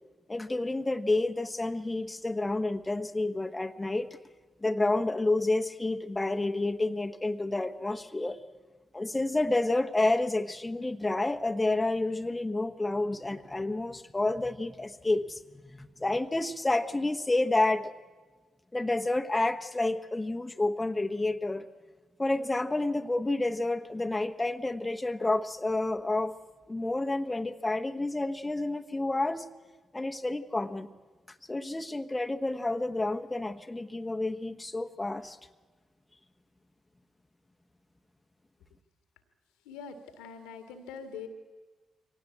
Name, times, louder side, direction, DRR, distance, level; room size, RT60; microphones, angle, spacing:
voice 1, 0.3-4.1 4.6-8.4 8.9-15.4 15.7-17.9 18.7-21.7 22.2-26.3 26.7-29.5 29.9-30.9 31.5-35.4, left 2 dB, 20° left, 7 dB, 1.2 m, -29 dB
voice 2, 39.7-41.3, left 6 dB, 80° left, 8 dB, 2.0 m, -43 dB
23.5 x 17.5 x 8.5 m, 1.3 s
hypercardioid pair, 40°, 0 cm